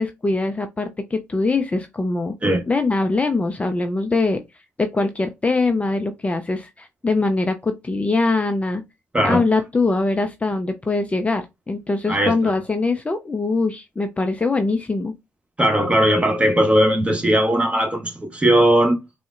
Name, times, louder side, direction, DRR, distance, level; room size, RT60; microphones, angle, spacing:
voice 1, 0.0-2.3 2.7-4.4 4.8-8.8 9.2-15.1, left 3 dB, 20° left, 0.4 m, -22 dB
voice 2, 12.1-12.5 15.6-19.0, right 1 dB, 20° right, 1.0 m, -18 dB
3.6 x 2.0 x 2.4 m
hypercardioid pair, 55°, 7 cm